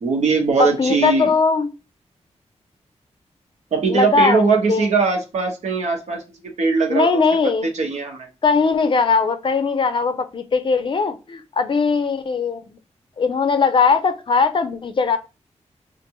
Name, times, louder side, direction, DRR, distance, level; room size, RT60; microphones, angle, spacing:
voice 1, 0.0-1.3 3.7-6.2 6.6-7.2 7.7-8.3, right 4 dB, 75° right, 2 dB, 1.1 m, -20 dB
voice 2, 0.6-1.7 3.9-4.9 6.9-7.7 8.4-12.8 13.2-15.2, left 4 dB, 45° left, 10 dB, 0.5 m, -19 dB
5.9 x 2.5 x 2.9 m, 0.30 s
wide cardioid pair, 160°, 12 cm